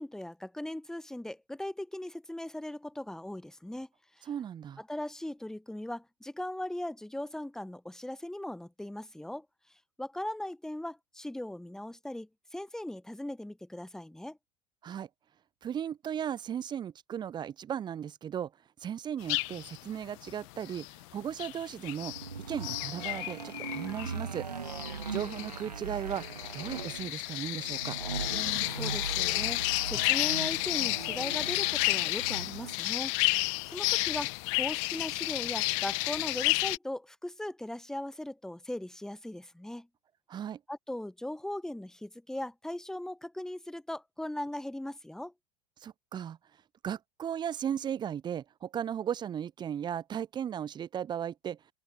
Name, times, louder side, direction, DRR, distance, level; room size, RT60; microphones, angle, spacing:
voice 1, 0.0-3.9 4.2-4.3 4.8-9.5 10.0-14.4 28.3-39.9 40.7-45.3, left 1 dB, 5° left, 1.0 m, -39 dB
voice 2, 4.3-4.8 14.8-15.1 15.6-18.5 18.8-20.9 21.1-22.1 22.5-24.5 25.1-26.3 26.5-28.0 40.3-40.6 45.8-46.4 46.8-51.6, right 9 dB, 20° right, 0.6 m, -36 dB
sound 1, 19.2-19.8 20.2-21.0 21.4-22.3 22.6-36.8, left 31 dB, 50° left, 1.2 m, -31 dB
sound 2, 22.0-32.8, right 5 dB, 85° right, 1.8 m, -40 dB
open air
figure-of-eight pair, 85°, 20 cm